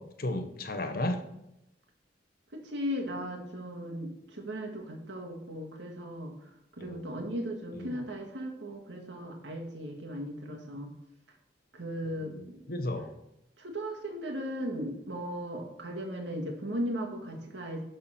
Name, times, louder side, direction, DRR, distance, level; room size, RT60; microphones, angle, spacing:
voice 1, 0.2-1.2 6.8-7.1 7.7-7.9 12.3-13.1, left 1 dB, 55° left, 8 dB, 1.0 m, -34 dB
voice 2, 2.5-6.5 6.8-10.9 11.7-12.6 13.6-17.8, equal, 85° right, 1 dB, 2.0 m, -37 dB
11.5 x 4.3 x 5.9 m, 0.85 s
head